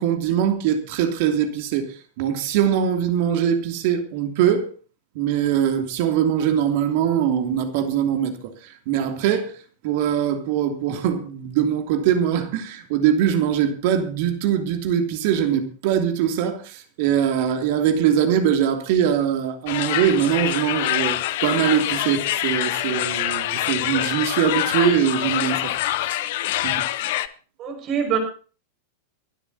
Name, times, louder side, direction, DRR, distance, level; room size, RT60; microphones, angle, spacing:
voice 1, 0.0-4.7 5.1-9.5 9.8-25.7 26.1-26.2 26.6-26.9, right 9 dB, 55° right, 3.0 m, -22 dB
sound 1, 19.7-27.3, left 14 dB, 60° left, 1.0 m, -25 dB
voice 2, 27.6-28.2, right 8 dB, 40° right, 6.3 m, -24 dB
24.0 x 12.0 x 2.9 m
figure-of-eight pair, 95°, 0 cm